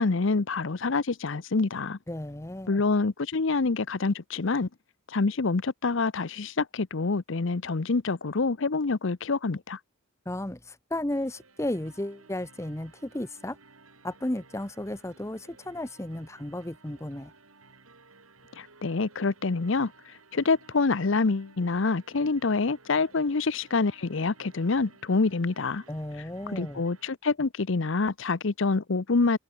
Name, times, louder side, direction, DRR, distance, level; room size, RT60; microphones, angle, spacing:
voice 1, 0.0-2.0 2.7-4.7 5.1-9.8 18.6-25.8 26.5-29.4, left 3 dB, 60° left, 0.7 m, -26 dB
voice 2, 2.1-2.8 10.3-13.6 14.0-17.3 25.9-26.8, left 1 dB, 15° left, 0.8 m, -34 dB
sound 1, 11.1-27.1, right 3 dB, 85° right, 7.8 m, -57 dB
head